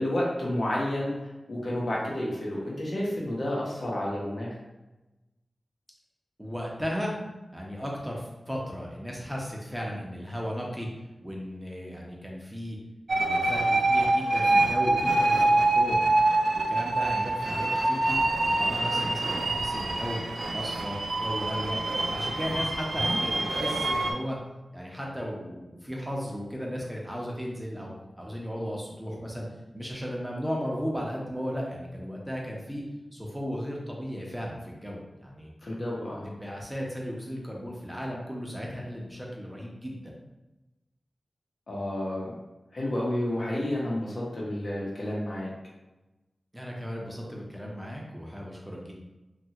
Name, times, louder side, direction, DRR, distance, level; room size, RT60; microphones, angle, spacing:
voice 1, 0.0-4.5 35.6-36.3 41.7-42.3 42.7-45.5, left 1 dB, 65° left, -4 dB, 0.8 m, -30 dB
voice 2, 6.4-7.1 7.5-10.9 11.2-12.8 13.2-16.0 16.7-20.2 20.5-21.8 22.1-24.4 24.7-27.9 28.2-29.5 29.7-32.8 33.1-35.5 36.2-40.2 46.5-48.9, equal, 5° right, -2 dB, 0.7 m, -35 dB
sound 1, 13.1-24.1, right 2 dB, 70° right, 0.4 m, -25 dB
2.9 x 2.4 x 2.8 m, 1.0 s
wide cardioid pair, 65°, 0 cm